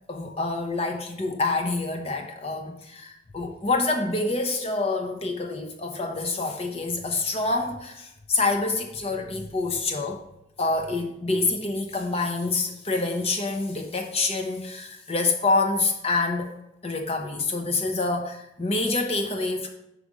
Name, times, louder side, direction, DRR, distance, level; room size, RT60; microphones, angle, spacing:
voice 1, 0.1-10.2 10.6-16.5 16.8-19.7, left 3 dB, 30° left, 3 dB, 0.9 m, -27 dB
5.3 x 5.0 x 4.9 m, 0.85 s
head